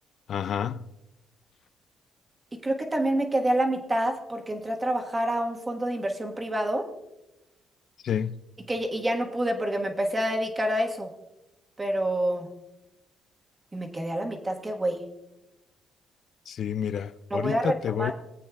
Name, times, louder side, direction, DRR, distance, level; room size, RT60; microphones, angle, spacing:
voice 1, 0.3-0.9 8.0-8.4 16.5-18.1, left 8 dB, 60° left, 0.4 m, -29 dB
voice 2, 2.6-6.8 8.7-11.1 11.8-12.5 13.7-15.0 17.3-18.1, right 1 dB, 20° right, 1.4 m, -27 dB
19.0 x 8.4 x 2.4 m
cardioid pair, 90°, 0 cm